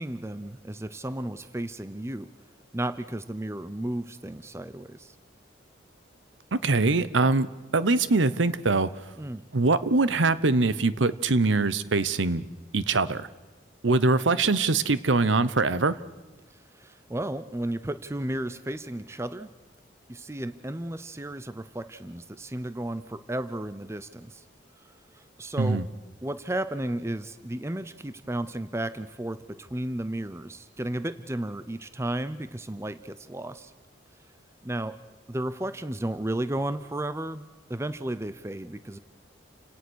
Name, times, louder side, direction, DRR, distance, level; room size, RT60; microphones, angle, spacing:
voice 1, 0.0-2.3 2.7-5.1 9.2-9.4 16.7-19.5 20.1-24.4 25.1-25.8 26.2-33.7 34.6-35.0 35.3-37.4 37.7-39.0, right 1 dB, 15° right, 13 dB, 0.6 m, -33 dB
voice 2, 6.5-7.5 7.7-8.9 9.5-12.5 12.7-13.3 13.8-16.0 25.6-25.8, right 3 dB, 85° right, 16 dB, 0.9 m, -23 dB
30.0 x 17.5 x 6.4 m, 1.2 s
head